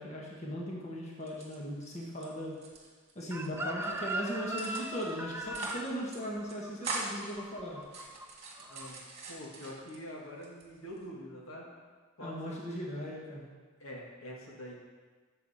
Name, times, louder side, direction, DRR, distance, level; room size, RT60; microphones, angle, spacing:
voice 1, 0.0-2.6 3.2-7.8 12.2-13.4, equal, 35° left, -3 dB, 1.7 m, -38 dB
sound 1, 1.2-2.3 2.5-3.5 3.8-4.1 4.6-5.1 5.4-5.9 6.1-6.2 6.5-7.3 7.8-10.0 10.4-11.1, right 3 dB, 35° right, 2.0 m, -42 dB
Chicken rooster, 3.3-8.3 8.5-8.9, right 2 dB, 10° right, 0.5 m, -39 dB
voice 2, 8.6-9.0 9.3-11.6 12.2-12.6 13.8-14.7, equal, 75° left, -2 dB, 2.0 m, -45 dB
13.0 x 7.2 x 4.3 m, 1.4 s
head